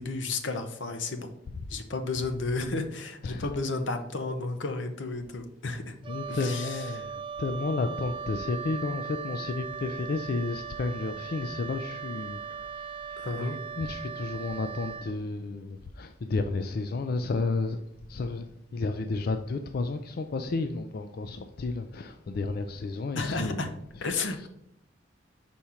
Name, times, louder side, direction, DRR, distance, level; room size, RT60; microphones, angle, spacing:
voice 1, 0.0-1.3 1.7-6.0 6.3-6.8 13.2-13.6 23.1-23.7 24.0-24.5, left 3 dB, 85° left, 0.8 m, -32 dB
voice 2, 3.2-3.5 6.1-17.8 18.1-24.5, left 3 dB, 55° left, 0.4 m, -32 dB
Wind instrument woodwind instrument, 6.0-15.1, right 6 dB, 30° right, 0.4 m, -39 dB
5.7 x 4.3 x 4.8 m
head